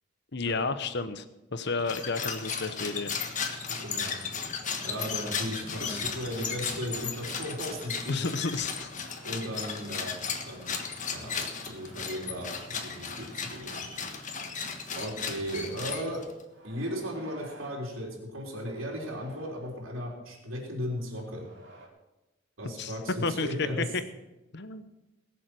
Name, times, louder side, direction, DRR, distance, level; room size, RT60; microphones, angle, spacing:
voice 1, 0.3-1.2 1.5-3.1 5.8-6.1 8.1-8.9 22.8-23.8 24.5-24.9, left 3 dB, 55° left, 12 dB, 1.0 m, -31 dB
sound 1, 1.8-16.4, left 6 dB, 40° left, 1.5 m, -35 dB
sound 2, 2.7-13.5, right 2 dB, 30° right, 3.4 m, -55 dB
voice 2, 3.7-4.1 4.8-8.2 9.2-10.1 10.5-10.8 11.1-13.9 14.9-16.2 16.6-21.5 22.6-23.8, equal, 90° right, -3 dB, 3.6 m, -36 dB
sound 3, 13.6-14.3 14.8-14.9 15.9-16.0 16.5-17.9 18.4-19.8 20.6-21.9, right 2 dB, 60° right, 4.1 m, -53 dB
21.0 x 7.3 x 6.1 m, 1.0 s
head